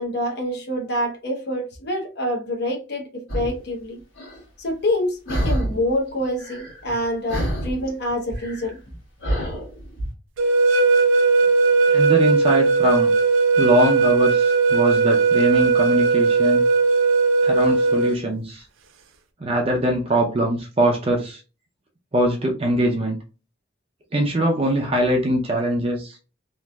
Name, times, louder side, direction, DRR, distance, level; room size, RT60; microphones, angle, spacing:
voice 1, 0.0-4.0 4.6-8.8, left 1 dB, 55° left, 0.7 m, -26 dB
sound 1, 3.3-3.6 4.2-4.4 5.3-5.9 6.2-7.0 7.3-10.1, equal, 85° left, 1.4 m, -27 dB
sound 2, 10.4-18.2, right 4 dB, 85° right, 0.5 m, -18 dB
voice 2, 11.9-13.1 13.6-16.6 17.4-18.7 19.4-21.4 22.1-23.2 24.1-26.2, right 1 dB, 30° right, 0.5 m, -22 dB
3.0 x 2.5 x 2.2 m
head